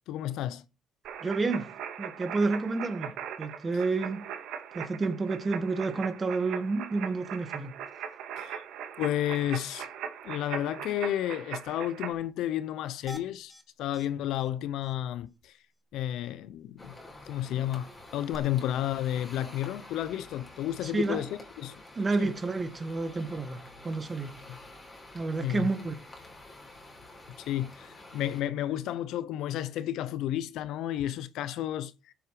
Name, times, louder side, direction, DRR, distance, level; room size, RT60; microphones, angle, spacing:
voice 1, 0.1-0.6 8.4-8.6 9.0-9.9 10.2-13.5 13.8-15.5 15.9-17.0 17.2-21.8 22.2-22.3 24.5-24.6 25.4-25.7 27.4-32.1, left 12 dB, 75° left, 0.7 m, -32 dB
sound 1, 1.0-12.1, right 8 dB, 75° right, 2.4 m, -40 dB
voice 2, 1.2-1.7 2.0-3.1 3.4-4.2 4.7-7.7 20.8-21.3 22.0-24.3 25.1-25.9, right 3 dB, 25° right, 2.0 m, -30 dB
sound 2, 13.1-13.6 13.9-14.1 14.4-14.5 14.8-14.9 18.3-18.4, right 1 dB, ahead, 1.7 m, -45 dB
sound 3, 16.8-28.4, left 2 dB, 20° left, 4.6 m, -49 dB
14.5 x 7.7 x 5.0 m
cardioid pair, 125°, 0 cm